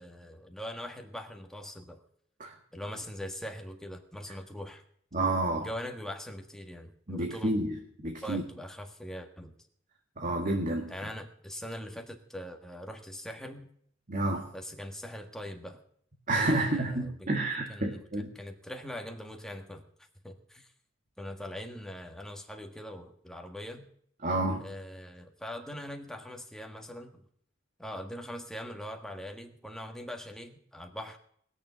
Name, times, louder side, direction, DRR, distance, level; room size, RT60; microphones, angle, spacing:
voice 1, 0.0-2.0 2.7-4.8 5.5-7.5 8.2-9.5 10.9-13.7 14.5-15.8 16.3-17.3 17.7-18.0 18.3-19.8 20.2-20.7 21.2-23.9 24.6-27.2 27.8-31.2, equal, 5° left, 3 dB, 1.6 m, -42 dB
voice 2, 5.1-5.7 7.1-8.4 10.2-10.9 14.1-14.5 16.3-18.3 24.2-24.6, right 2 dB, 40° right, 1 dB, 1.8 m, -30 dB
20.0 x 7.0 x 7.0 m, 0.64 s
head